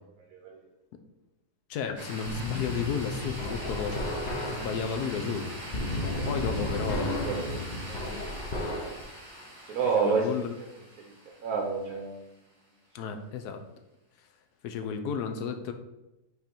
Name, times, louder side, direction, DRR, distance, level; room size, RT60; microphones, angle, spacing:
voice 1, 1.7-5.5 6.3-7.2 9.9-10.5 12.9-13.6 14.6-15.7, left 6 dB, 75° left, 7 dB, 1.1 m, -33 dB
sound 1, 2.0-12.2, equal, 15° right, 2.0 m, -43 dB
sound 2, 2.3-9.0, left 1 dB, 55° left, 0.4 m, -33 dB
voice 2, 6.1-6.6 7.2-7.6 7.9-8.1 9.7-10.3 11.4-12.3, right 5 dB, 65° right, 1 dB, 1.1 m, -30 dB
5.7 x 3.8 x 4.3 m, 0.95 s
omnidirectional pair, 1.8 m